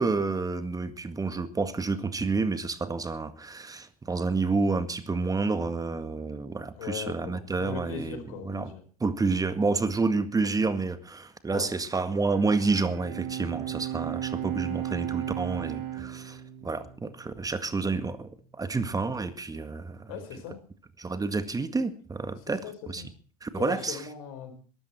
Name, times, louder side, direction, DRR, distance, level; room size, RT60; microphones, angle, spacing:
voice 1, 0.0-8.7 9.0-20.1 21.0-23.0 23.4-24.0, right 3 dB, 20° right, 1.9 m, -29 dB
voice 2, 6.7-8.8 11.5-11.7 20.1-20.6 22.4-23.1 23.6-24.6, left 7 dB, 70° left, 4.6 m, -39 dB
Bowed string instrument, 12.2-17.7, right 13 dB, 65° right, 3.2 m, -35 dB
21.5 x 13.0 x 4.4 m
hypercardioid pair, 70°, 18 cm